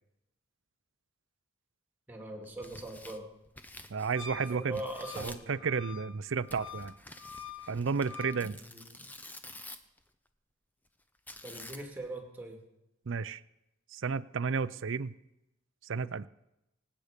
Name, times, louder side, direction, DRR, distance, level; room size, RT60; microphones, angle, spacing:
voice 1, 2.1-3.3 4.3-5.6 8.4-9.1 11.4-12.6, right 1 dB, 10° right, 2 dB, 2.2 m, -41 dB
Tearing, 2.4-4.4 4.7-5.5 6.5-10.0 11.3-12.1, left 1 dB, 10° left, 0.6 m, -49 dB
voice 2, 3.9-4.8 5.2-6.9 7.7-8.6 13.1-13.4 13.9-15.1 15.8-16.3, right 5 dB, 60° right, 17 dB, 0.5 m, -32 dB
Wind instrument woodwind instrument, 4.2-8.4, left 6 dB, 60° left, 1.6 m, -47 dB
25.0 x 8.6 x 5.1 m, 0.90 s
head